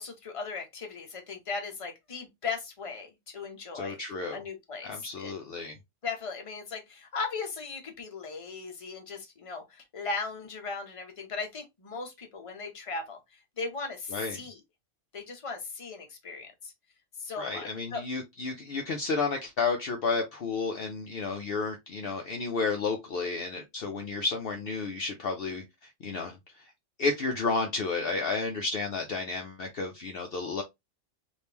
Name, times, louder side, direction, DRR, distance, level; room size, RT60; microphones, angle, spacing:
voice 1, 0.0-4.0 4.3-5.3 6.0-13.2 13.6-14.6 15.1-16.7 17.2-18.0, left 4 dB, 30° left, 0.8 m, -37 dB
voice 2, 3.7-4.4 4.8-5.8 14.1-14.4 17.4-26.7 27.0-30.6, left 4 dB, 60° left, 0.7 m, -32 dB
3.5 x 2.6 x 2.8 m
omnidirectional pair, 1.3 m